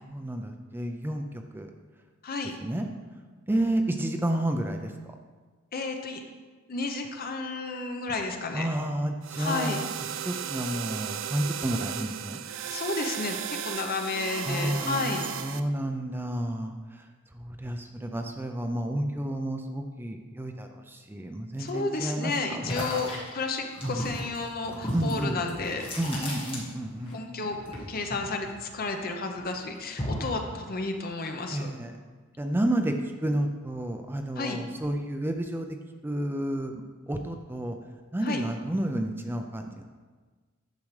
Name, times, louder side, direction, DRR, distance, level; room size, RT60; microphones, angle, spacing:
voice 1, 0.1-1.2 1.5-1.7 2.6-2.9 3.5-4.9 8.5-9.8 10.2-12.4 14.5-16.7 17.3-22.3 23.8-24.1 24.9-25.4 26.0-27.1 31.5-31.9 32.4-32.9 33.2-35.7 36.0-36.8 37.1-37.8 38.1-39.8, right 1 dB, 10° right, 4 dB, 0.4 m, -30 dB
voice 2, 5.7-6.2 6.7-8.7 9.4-9.8 12.7-15.2 21.6-25.9 27.1-27.6 27.9-31.7 34.4-34.6 38.2-38.4, left 3 dB, 45° left, 4 dB, 0.8 m, -32 dB
sound 1, 9.2-15.6, right 8 dB, 65° right, 0.5 m, -35 dB
sound 2, 22.6-27.1 27.4-29.0 29.4-30.4, equal, 25° left, 1.7 m, -35 dB
10.5 x 6.4 x 3.2 m, 1.4 s
head